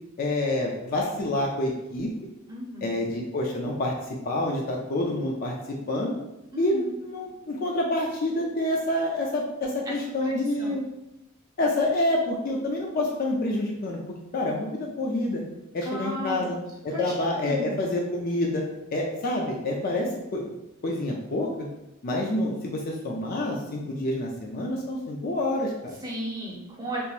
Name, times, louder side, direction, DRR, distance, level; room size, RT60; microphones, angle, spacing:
voice 1, 0.2-2.1 2.8-3.9 4.2-6.1 6.6-10.8 11.6-14.0 14.3-15.4 15.7-16.6 16.8-18.6 18.9-20.4 20.8-21.5 22.0-25.9, left 1 dB, 45° left, -1 dB, 0.4 m, -27 dB
voice 2, 2.5-3.0 6.5-6.9 9.9-10.8 15.8-16.6 16.9-17.1 17.4-17.8 26.0-27.0, right 1 dB, 20° right, -4 dB, 0.8 m, -35 dB
3.6 x 2.8 x 2.5 m, 0.91 s
head